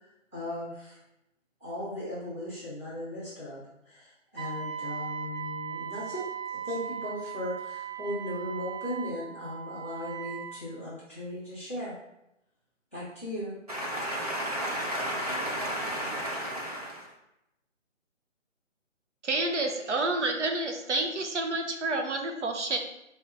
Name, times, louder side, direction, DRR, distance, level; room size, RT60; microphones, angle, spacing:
voice 1, 0.3-1.0 1.6-6.2 6.6-11.9 12.9-13.6, left 1 dB, 10° left, -12 dB, 0.6 m, -37 dB
Wind instrument woodwind instrument, 4.4-10.6, right 8 dB, 85° right, 1.0 m, -38 dB
voice 2, 13.7-17.1, equal, 30° right, -1 dB, 0.7 m, -32 dB
voice 3, 19.2-22.8, right 2 dB, 65° right, 4 dB, 0.8 m, -29 dB
4.4 x 2.7 x 3.3 m, 0.86 s
hypercardioid pair, 170°, 38 cm